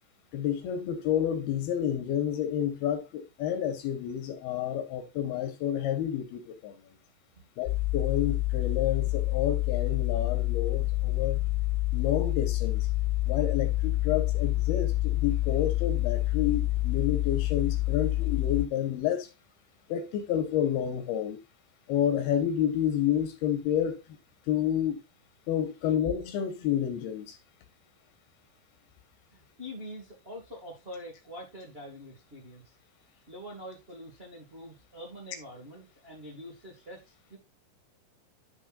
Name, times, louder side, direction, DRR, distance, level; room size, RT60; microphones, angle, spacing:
voice 1, 0.3-6.7 7.6-11.4 11.9-12.9 13.3-19.3 19.9-21.4 21.9-24.0 24.5-25.0 25.5-27.4, left 10 dB, 70° left, 2.9 m, -29 dB
sound 1, 7.7-18.7, left 18 dB, 90° left, 2.9 m, -27 dB
voice 2, 29.3-32.7 33.1-37.4, equal, 30° right, 1.1 m, -45 dB
11.0 x 6.3 x 2.5 m
omnidirectional pair, 4.9 m